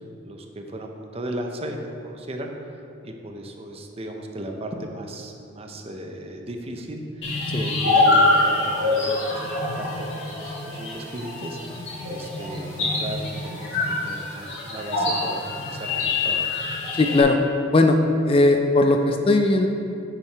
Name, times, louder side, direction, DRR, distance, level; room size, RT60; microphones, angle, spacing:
voice 1, 0.2-2.5 3.0-9.5 9.8-9.9 10.1-11.6 12.1-16.5, right 1 dB, 30° right, 3 dB, 0.6 m, -35 dB
sound 1, 7.2-17.2, left 2 dB, 65° left, 1.6 m, -24 dB
voice 2, 16.9-17.4 17.7-18.0 18.2-19.7, left 2 dB, 30° left, 4 dB, 0.3 m, -18 dB
8.7 x 4.7 x 4.5 m, 2.6 s
head